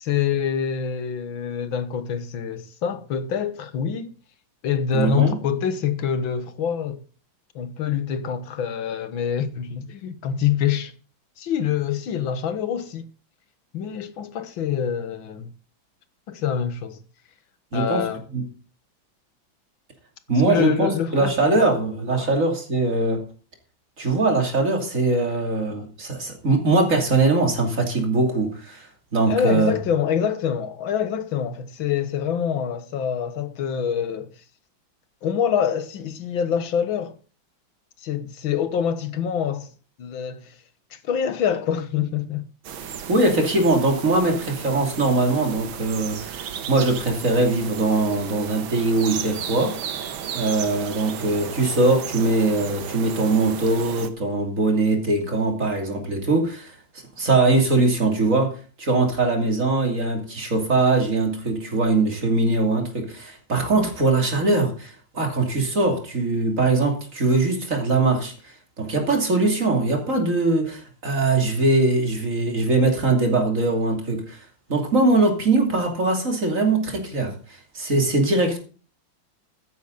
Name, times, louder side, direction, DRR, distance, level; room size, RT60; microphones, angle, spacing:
voice 1, 0.0-4.1 4.6-7.0 7.6-10.9 11.4-13.1 13.7-15.5 16.3-17.0 17.7-18.2 20.3-21.3 22.2-22.3 29.3-34.3 35.2-37.2 38.0-39.7 40.0-40.6 40.9-42.5, left 8 dB, 85° left, 2.0 m, -25 dB
voice 2, 4.9-5.4 17.7-18.1 18.3-18.5 20.3-23.2 24.0-28.9 29.1-29.7 43.1-49.8 50.3-56.7 57.2-74.4 74.7-78.6, right 2 dB, 40° right, 3.2 m, -21 dB
sound 1, 42.6-54.1, right 8 dB, 85° right, 2.0 m, -34 dB
13.5 x 10.5 x 4.0 m
omnidirectional pair, 2.1 m